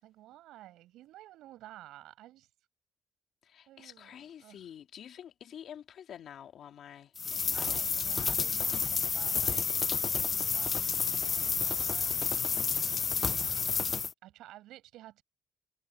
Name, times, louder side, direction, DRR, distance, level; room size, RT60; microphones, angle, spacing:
voice 1, 0.0-2.5 3.7-4.6 7.5-9.7 10.1-12.4 13.3-13.7 14.2-15.2, right 15 dB, 90° right, 7.1 m, -52 dB
voice 2, 3.4-7.8, left 9 dB, 70° left, 2.4 m, -48 dB
sound 1, 7.2-14.1, left 6 dB, 40° left, 0.4 m, -30 dB
cardioid pair, 90°, 0 cm